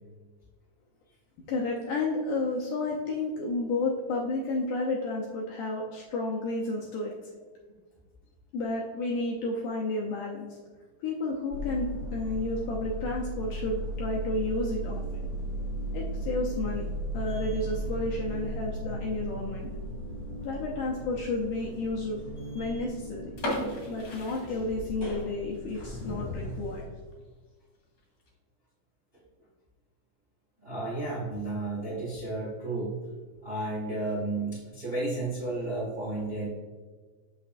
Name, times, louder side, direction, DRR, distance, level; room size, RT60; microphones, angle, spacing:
voice 1, 1.5-7.1 8.5-10.6 11.0-15.3 15.9-16.8 17.1-19.7 20.4-22.2 22.5-23.3 23.9-26.9, left 2 dB, 75° left, -2 dB, 1.9 m, -31 dB
sound 1, 11.5-26.8, right 1 dB, 30° left, 1.0 m, -36 dB
sound 2, 23.3-25.2 25.5-25.6 26.2-26.4 26.8-26.9 27.1-27.2 28.0-28.3, left 1 dB, 45° left, 2.9 m, -35 dB
voice 2, 30.6-32.9 33.4-36.5, right 2 dB, 70° right, -6 dB, 0.5 m, -32 dB
7.6 x 6.4 x 2.6 m, 1.4 s
omnidirectional pair, 4.4 m